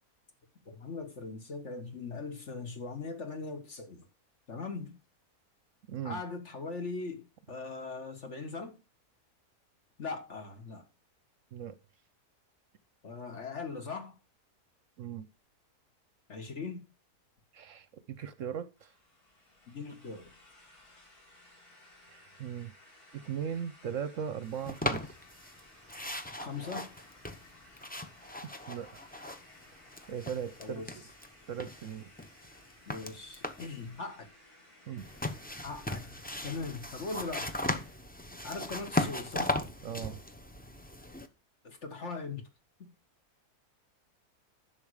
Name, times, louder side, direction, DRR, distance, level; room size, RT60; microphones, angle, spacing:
voice 1, 0.6-4.0 4.5-5.0 6.0-8.8 10.0-10.8 13.0-14.1 16.3-16.8 19.7-20.2 26.4-26.9 30.6-30.9 32.9-34.3 35.6-36.1 36.4-37.5 38.4-39.5 41.6-42.5 42.8-42.9, left 4 dB, 50° left, 1.8 m, -40 dB
voice 2, 5.9-6.2 11.5-11.8 15.0-15.3 17.5-18.9 22.1-22.7 23.1-25.1 28.7-28.9 30.1-31.0 31.5-32.1 34.9-35.1 39.8-40.2, right 8 dB, 65° right, 0.9 m, -38 dB
sound 1, 18.8-38.1, left 1 dB, 75° left, 4.6 m, -58 dB
sound 2, 24.7-25.6 25.9-29.6 29.9-31.3 31.6-33.8 35.0-41.3, left 1 dB, 10° left, 0.4 m, -37 dB
11.0 x 6.3 x 4.8 m
omnidirectional pair, 1.6 m